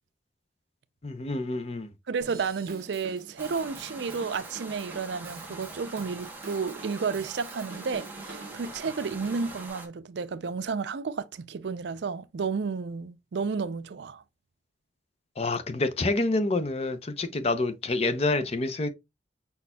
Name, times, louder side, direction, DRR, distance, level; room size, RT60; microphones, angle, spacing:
voice 1, 1.0-1.9 15.4-18.9, left 2 dB, 35° left, 0.6 m, -27 dB
voice 2, 2.1-14.2, right 5 dB, 70° right, 0.4 m, -32 dB
Drum kit / Drum, 2.2-9.7, right 4 dB, 55° right, 0.9 m, -46 dB
sound 1, 3.4-9.9, right 2 dB, 10° right, 1.0 m, -44 dB
5.5 x 4.2 x 2.2 m
head